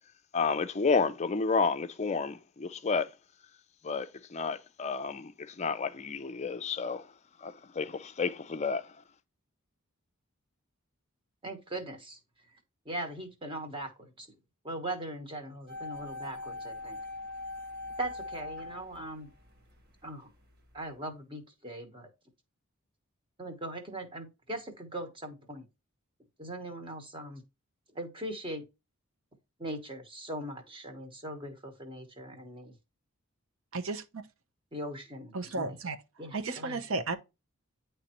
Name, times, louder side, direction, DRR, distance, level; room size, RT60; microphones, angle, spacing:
voice 1, 0.3-3.1 3.8-7.0 7.4-8.8, left 4 dB, 30° left, 0.4 m, -31 dB
voice 2, 11.4-12.2 12.8-14.3 14.6-17.0 18.0-19.3 20.0-20.3 20.7-22.1 23.4-25.7 26.4-27.4 27.9-28.6 29.6-32.7 34.7-35.7 36.2-36.8, right 1 dB, 25° right, 1.1 m, -40 dB
sound 1, 15.7-19.8 20.0-20.1, left 2 dB, 45° right, 1.3 m, -41 dB
voice 3, 33.7-34.2 35.3-36.0 36.3-37.2, right 3 dB, 65° right, 0.8 m, -33 dB
9.7 x 3.3 x 2.9 m
head